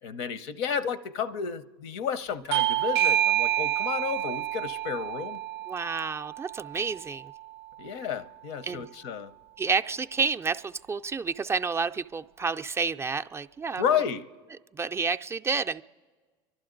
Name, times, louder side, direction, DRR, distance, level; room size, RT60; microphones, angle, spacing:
voice 1, 0.0-5.4 7.8-9.3 13.8-14.3, left 7 dB, 75° left, 0.7 m, -31 dB
Bell / Doorbell, 2.5-7.7, right 12 dB, 90° right, 0.4 m, -28 dB
voice 2, 5.7-7.3 8.6-8.9 9.6-13.8 14.7-15.8, right 5 dB, 20° right, 0.3 m, -30 dB
28.0 x 12.0 x 3.9 m
hypercardioid pair, 90°, 13 cm